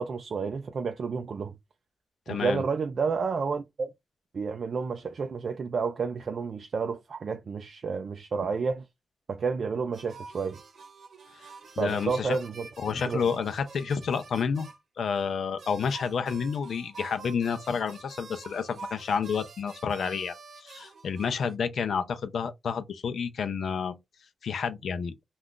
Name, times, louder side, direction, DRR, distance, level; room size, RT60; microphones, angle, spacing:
voice 1, 0.0-1.6 2.3-3.9 4.3-8.9 9.3-10.6 11.8-12.7 13.1-13.2, right 5 dB, 50° right, 0.3 m, -30 dB
voice 2, 2.3-2.6 11.8-12.4 12.8-14.7 15.0-24.0 24.4-25.1, left 6 dB, 70° left, 0.4 m, -30 dB
sound 1, 9.9-14.8 15.1-15.2 15.6-21.5, right 4 dB, 70° right, 0.8 m, -48 dB
2.4 x 2.3 x 3.6 m
wide cardioid pair, 135°, 0 cm